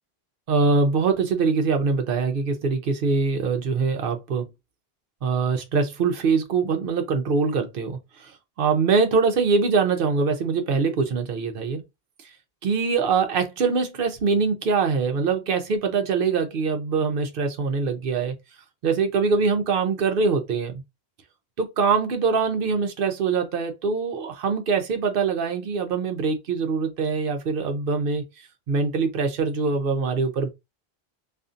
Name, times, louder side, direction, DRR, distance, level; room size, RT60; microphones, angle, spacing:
voice 1, 0.5-4.4 5.2-11.8 12.6-18.3 18.8-20.8 21.6-28.2 28.7-30.5, right 4 dB, 65° right, 0.7 m, -23 dB
2.6 x 2.4 x 2.4 m
omnidirectional pair, 1.1 m